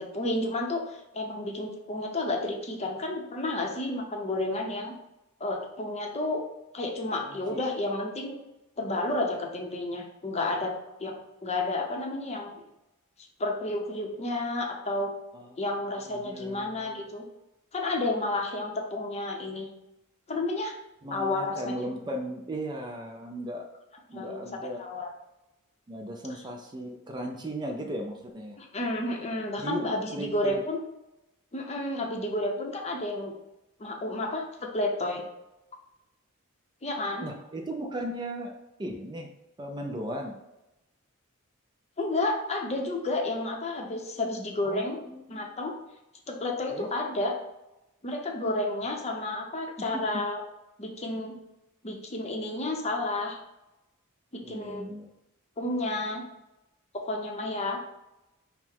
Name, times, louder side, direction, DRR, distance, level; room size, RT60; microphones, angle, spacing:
voice 1, 0.0-4.9 5.4-6.4 6.7-8.4 8.8-10.7 11.0-12.6 13.4-15.1 15.6-17.2 17.7-19.7 20.3-20.7 21.1-21.9 24.1-24.5 24.8-25.1 28.6-30.8 31.5-33.3 33.8-35.2 36.8-37.3 42.0-45.0 45.3-45.7 46.3-47.3 48.0-50.4 50.8-51.3 51.8-53.4 54.3-54.9 55.6-56.2 56.9-57.8, left 2 dB, 30° left, 1 dB, 0.6 m, -31 dB
voice 2, 7.2-7.6 15.3-15.6 16.0-17.0 21.0-23.7 24.1-24.8 25.9-28.6 29.6-30.5 37.2-38.5 38.8-39.3 39.6-40.3 44.6-45.5 46.7-46.9 49.8-50.2 54.4-55.1, right 1 dB, 20° right, 2 dB, 0.4 m, -37 dB
5.7 x 2.1 x 4.5 m, 0.93 s
head